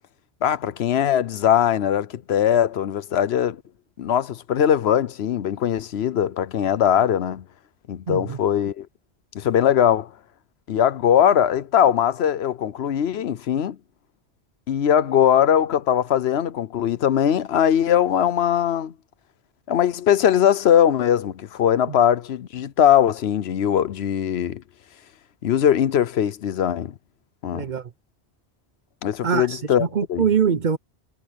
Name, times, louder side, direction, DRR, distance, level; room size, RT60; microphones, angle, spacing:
voice 1, 0.4-3.6 4.0-7.4 7.9-8.9 9.3-10.1 10.7-13.8 14.7-18.9 19.7-24.6 25.4-26.9 27.4-27.6 29.0-30.2, left 9 dB, 75° left, 1.0 m, -20 dB
voice 2, 8.1-8.4 21.9-22.0 27.5-27.9 29.2-30.8, right 7 dB, 50° right, 0.8 m, -23 dB
omnidirectional pair, 1.1 m